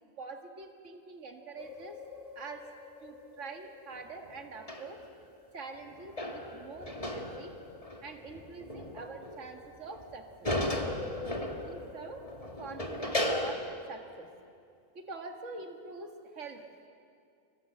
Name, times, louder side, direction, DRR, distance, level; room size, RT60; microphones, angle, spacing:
voice 1, 0.2-2.0 2.4-2.7 3.0-5.0 5.5-7.6 8.0-10.5 11.4-12.2 12.6-14.3 14.9-16.7, right 4 dB, 60° right, 4 dB, 2.2 m, -45 dB
sound 1, 1.6-5.5 5.7-13.5, left 1 dB, 25° left, 2.1 m, -37 dB
30.0 x 24.0 x 7.8 m, 2.5 s
omnidirectional pair, 1.5 m